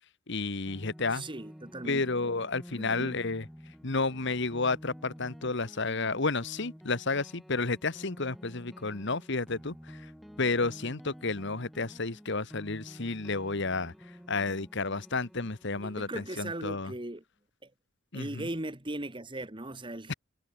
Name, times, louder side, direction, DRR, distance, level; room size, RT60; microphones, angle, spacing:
voice 1, 0.3-1.3 1.8-3.5 3.8-10.0 10.4-13.9 14.3-16.9 18.1-18.5 20.1-20.2, left 3 dB, 55° left, 1.5 m, -31 dB
sound 1, 0.7-16.8, equal, ahead, 5.2 m, -50 dB
voice 2, 1.1-2.0 2.8-3.2 15.8-17.2 17.6-17.7 18.1-20.1, right 1 dB, 25° right, 1.7 m, -38 dB
head